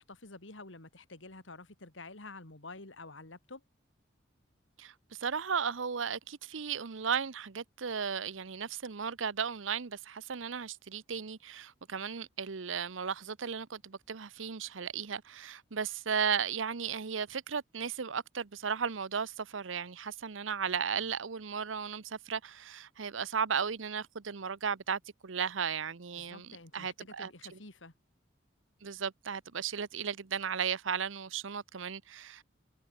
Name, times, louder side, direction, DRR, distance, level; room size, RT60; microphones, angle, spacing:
voice 1, 0.0-3.6 26.1-27.9, left 3 dB, 80° left, 3.1 m, -49 dB
voice 2, 5.2-27.3 28.8-32.4, right 6 dB, 85° right, 0.8 m, -35 dB
head